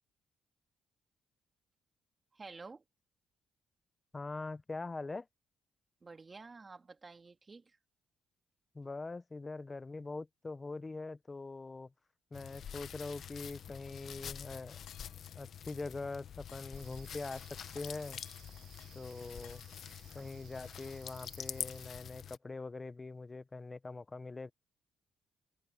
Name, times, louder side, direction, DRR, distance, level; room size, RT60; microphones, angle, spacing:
voice 1, 2.3-2.8 6.0-7.8 20.1-20.3, right 4 dB, 30° right, 2.4 m, -51 dB
voice 2, 4.1-5.3 8.7-11.9 12.3-14.8 15.3-18.2 18.9-19.6 20.1-24.5, left 3 dB, 25° left, 0.9 m, -43 dB
sound 1, 12.3-22.4, left 8 dB, 60° left, 1.4 m, -46 dB
sound 2, 14.9-16.2 16.5-19.9, left 13 dB, 90° left, 4.8 m, -61 dB
sound 3, 16.7-21.9, right 13 dB, 90° right, 2.8 m, -62 dB
cardioid pair, 90°, 0 cm